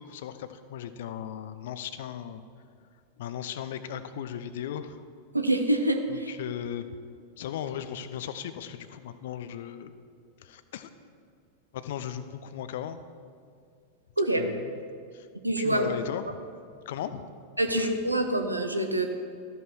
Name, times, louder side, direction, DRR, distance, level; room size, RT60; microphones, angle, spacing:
voice 1, 0.0-2.4 3.2-5.0 6.1-6.9 7.4-9.9 10.4-10.9 11.7-13.0 14.4-14.8 15.1-15.3 15.6-16.4 16.9-17.2 17.8-17.9, left 9 dB, 55° left, 12 dB, 0.5 m, -37 dB
voice 2, 5.3-6.3 14.2-14.5 15.4-16.0 17.6-19.0, right 1 dB, 85° right, 5 dB, 0.7 m, -26 dB
14.0 x 5.5 x 4.6 m, 2.3 s
figure-of-eight pair, 90°, 0 cm